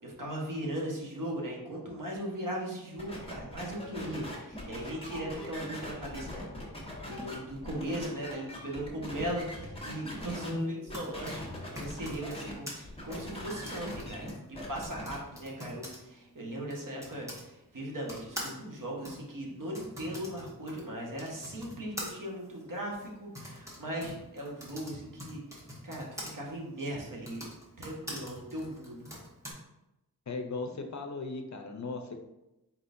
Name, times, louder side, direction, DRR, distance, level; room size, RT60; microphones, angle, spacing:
voice 1, 0.0-6.5 6.8-25.4 25.8-27.4 27.8-29.1, right 1 dB, 55° right, -3 dB, 1.3 m, -38 dB
sound 1, 3.0-10.5 10.9-12.5 12.8-15.2, left 1 dB, 15° left, 1.3 m, -41 dB
voice 2, 10.4-10.8 30.3-32.1, left 2 dB, 50° left, 5 dB, 0.6 m, -36 dB
Typing, 10.6-17.5 18.1-26.3 27.1-29.5, equal, 10° right, 1.2 m, -45 dB
4.3 x 4.1 x 2.6 m, 0.94 s
wide cardioid pair, 65°, 37 cm